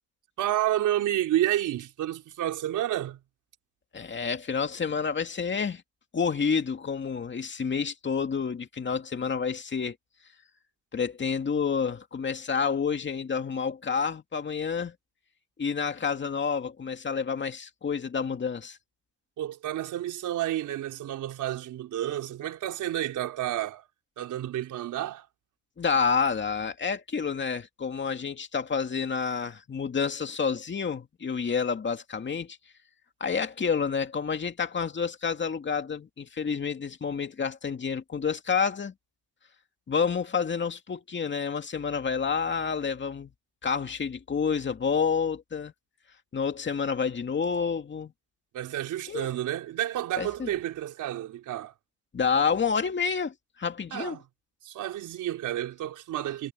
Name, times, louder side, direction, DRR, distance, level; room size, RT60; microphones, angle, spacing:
voice 1, 0.4-3.2 19.4-23.9 24.2-25.3 48.5-51.7 53.9-54.2 54.6-56.5, right 13 dB, 80° right, 4.2 m, -30 dB
voice 2, 3.9-5.8 6.1-10.0 10.9-14.9 15.6-18.8 25.8-32.6 33.2-38.9 39.9-43.3 43.6-45.7 46.3-48.1 49.1-49.3 50.2-50.5 52.1-54.2, left 6 dB, 40° left, 2.4 m, -29 dB
cardioid pair, 90°, 30 cm